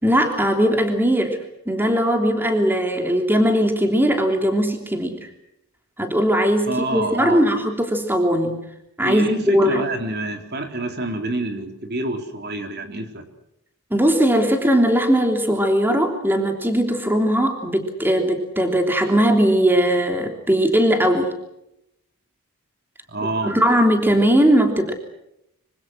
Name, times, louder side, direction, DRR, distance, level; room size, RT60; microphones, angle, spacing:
voice 1, 0.0-1.4 1.7-5.3 6.0-8.6 9.0-9.8 13.9-21.3 23.4-24.9, equal, 10° right, 4 dB, 3.2 m, -19 dB
voice 2, 6.7-7.5 9.0-13.3 23.1-23.6, right 2 dB, 50° right, 5 dB, 3.8 m, -27 dB
26.0 x 25.5 x 6.3 m, 0.82 s
head